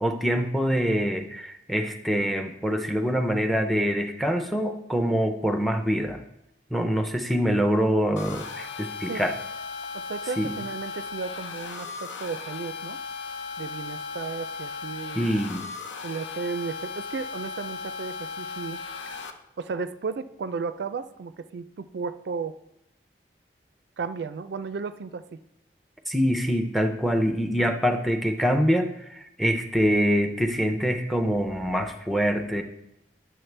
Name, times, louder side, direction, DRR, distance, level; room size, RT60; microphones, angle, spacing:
voice 1, 0.0-6.2 6.7-9.3 10.4-10.5 15.2-15.6 26.1-32.6, equal, ahead, 7 dB, 0.5 m, -25 dB
sound 1, 8.2-19.3, left 5 dB, 85° left, 0.7 m, -36 dB
voice 2, 9.9-13.0 13.6-15.3 16.0-18.8 19.6-22.6 24.0-25.4, right 5 dB, 70° right, 13 dB, 0.4 m, -34 dB
10.5 x 6.4 x 3.3 m, 0.83 s
head